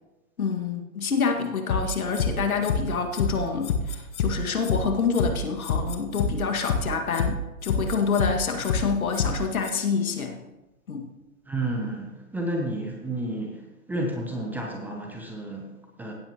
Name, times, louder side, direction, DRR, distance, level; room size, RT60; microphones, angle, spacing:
voice 1, 0.4-10.4 10.9-11.1, left 5 dB, 70° left, 4 dB, 2.0 m, -27 dB
sound 1, 1.7-2.3 2.6-2.8 3.1-3.3 3.6-4.3 4.6-4.8 5.1-5.3 5.6-6.3 6.6-6.8 7.1-7.3 7.6-8.3 8.6-8.8 9.1-9.3 9.6-9.7, left 7 dB, 50° left, 1.3 m, -25 dB
voice 2, 11.5-16.1, right 1 dB, 5° right, 1 dB, 0.8 m, -31 dB
16.5 x 8.7 x 3.0 m, 1.1 s
hypercardioid pair, 130°, 43 cm